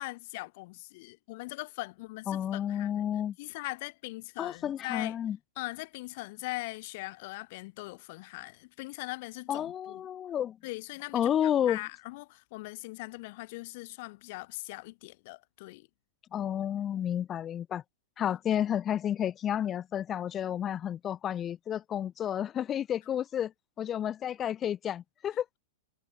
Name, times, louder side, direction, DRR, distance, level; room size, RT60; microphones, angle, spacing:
voice 1, 0.0-2.9 3.4-5.2 5.6-10.0 10.6-15.9 18.5-18.6, left 23 dB, 55° left, 1.6 m, -41 dB
voice 2, 2.3-3.3 4.4-5.4 9.5-10.6 11.1-11.8 16.3-17.8 18.2-23.5 23.8-25.4, left 10 dB, 25° left, 0.8 m, -31 dB
hypercardioid pair, 125°, 0 cm